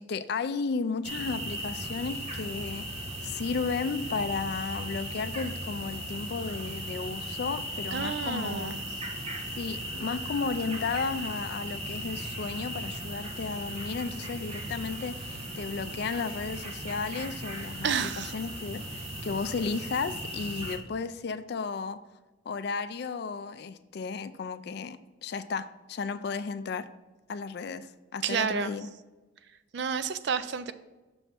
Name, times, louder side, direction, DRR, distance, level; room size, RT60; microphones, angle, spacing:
voice 1, 0.0-2.9 3.2-8.7 9.6-22.0 22.5-26.9 27.3-28.9, left 4 dB, 55° left, 12 dB, 0.3 m, -34 dB
sound 1, 1.0-20.8, right 1 dB, 30° right, 1.1 m, -37 dB
voice 2, 7.9-8.9 17.8-18.3 28.2-28.8 29.7-30.7, right 6 dB, 55° right, 12 dB, 0.4 m, -30 dB
6.2 x 3.4 x 5.7 m, 1.2 s
head